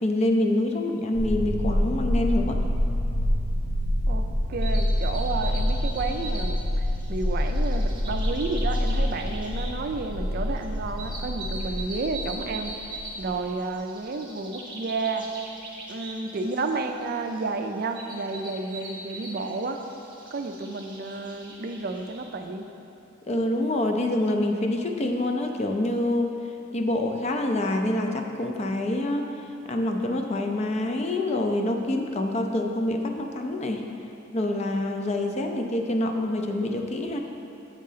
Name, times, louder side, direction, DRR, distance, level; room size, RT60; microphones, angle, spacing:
voice 1, 0.0-2.6 23.3-26.3 26.7-29.3 29.7-33.8 34.3-37.2, left 1 dB, 30° left, 3 dB, 0.4 m, -26 dB
sound 1, 1.1-13.4, left 1 dB, 70° left, 0.7 m, -27 dB
voice 2, 4.1-6.8 7.1-12.7 13.2-15.3 15.9-19.8 20.3-22.7, right 3 dB, 45° right, 5 dB, 0.4 m, -31 dB
sound 2, 4.6-22.3, right 2 dB, 25° right, 1.0 m, -41 dB
7.4 x 3.8 x 5.6 m, 2.8 s
head